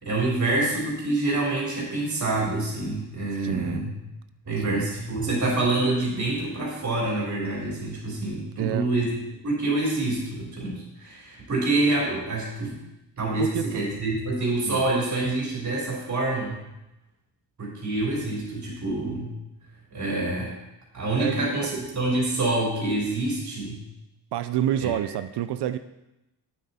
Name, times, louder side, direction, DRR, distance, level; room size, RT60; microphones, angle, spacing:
voice 1, 0.0-3.9 4.4-9.1 9.4-12.8 13.2-16.6 17.6-19.3 19.9-20.5 20.9-23.8 24.8-24.9, right 2 dB, 45° right, -4 dB, 3.4 m, -26 dB
voice 2, 3.3-3.8 4.7-4.9 8.6-8.9 13.4-13.8 14.6-14.8 21.2-21.4 24.3-25.8, right 11 dB, 75° right, 11 dB, 0.6 m, -28 dB
9.0 x 7.7 x 4.2 m, 0.93 s
cardioid pair, 100°, 40 cm